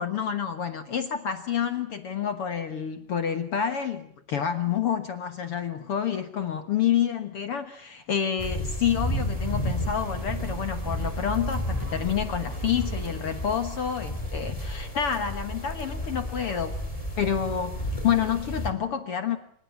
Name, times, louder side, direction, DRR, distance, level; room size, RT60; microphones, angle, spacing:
voice 1, 0.0-16.8 17.2-19.4, left 8 dB, 55° left, 9 dB, 1.9 m, -28 dB
sound 1, 8.4-18.7, equal, 10° left, 3.5 m, -32 dB
sound 2, 9.3-14.3, right 6 dB, 60° right, 3.3 m, -48 dB
27.5 x 25.5 x 7.2 m, 0.62 s
omnidirectional pair, 3.8 m